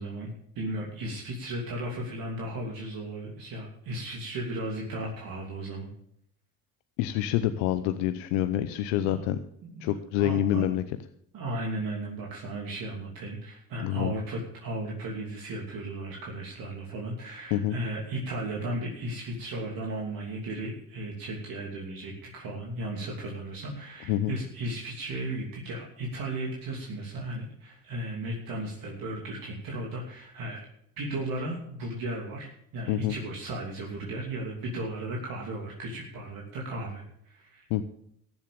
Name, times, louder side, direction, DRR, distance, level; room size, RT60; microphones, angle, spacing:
voice 1, 0.0-5.9 9.0-9.2 9.6-10.7 11.3-30.7 31.0-32.5 32.7-37.7, right 1 dB, 60° right, -2 dB, 2.9 m, -35 dB
voice 2, 7.0-9.4 9.8-10.8 13.8-14.1 17.5-17.8 24.1-24.4 32.9-33.2 37.7-37.8, left 12 dB, 85° left, 10 dB, 0.8 m, -27 dB
14.0 x 7.3 x 6.9 m, 0.72 s
hypercardioid pair, 65°, 38 cm